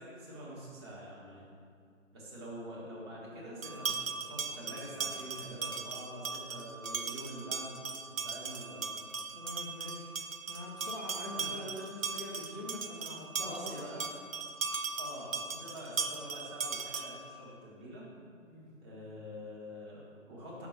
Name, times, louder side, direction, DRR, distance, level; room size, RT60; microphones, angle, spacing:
voice 1, 0.0-1.5 2.1-7.8 8.1-9.0 11.2-11.5 13.4-14.0 15.0-18.1 18.8-20.7, equal, 20° right, -6 dB, 1.4 m, -46 dB
sound 1, 3.6-17.3, right 5 dB, 80° right, 0.6 m, -38 dB
voice 2, 9.3-10.1 10.5-14.1 18.5-18.7, left 1 dB, 15° left, -6 dB, 0.6 m, -44 dB
5.5 x 4.4 x 5.7 m, 2.4 s
figure-of-eight pair, 140°, 39 cm